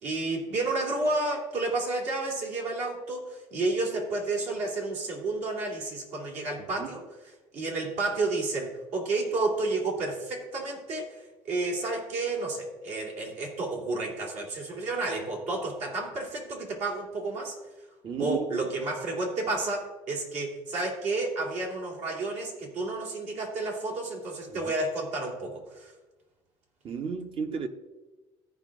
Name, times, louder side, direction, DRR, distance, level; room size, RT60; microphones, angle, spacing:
voice 1, 0.0-17.6 18.2-25.9, right 2 dB, 70° right, 3.0 m, -31 dB
voice 2, 18.0-18.7 24.5-24.6 26.8-27.7, right 6 dB, 45° right, 1.0 m, -33 dB
14.0 x 5.3 x 3.7 m
supercardioid pair, 85°, 12 cm